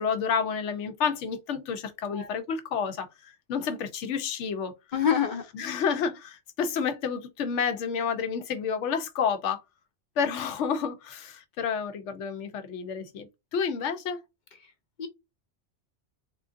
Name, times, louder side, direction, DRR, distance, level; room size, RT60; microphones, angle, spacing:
voice 1, 0.0-4.7 5.5-9.6 10.2-14.2, left 6 dB, 75° left, 0.9 m, -30 dB
voice 2, 4.9-5.4 15.0-15.1, left 8 dB, 55° left, 0.6 m, -25 dB
3.6 x 2.4 x 2.5 m
omnidirectional pair, 1.2 m